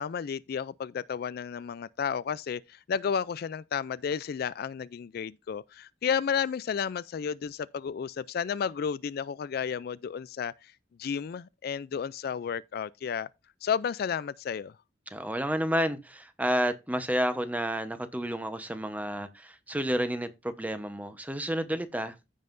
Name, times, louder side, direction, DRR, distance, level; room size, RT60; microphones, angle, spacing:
voice 1, 0.0-10.7 11.0-13.3 13.6-14.7, left 7 dB, 55° left, 0.3 m, -32 dB
voice 2, 15.1-22.4, equal, 10° right, 0.9 m, -30 dB
15.0 x 5.5 x 2.6 m
head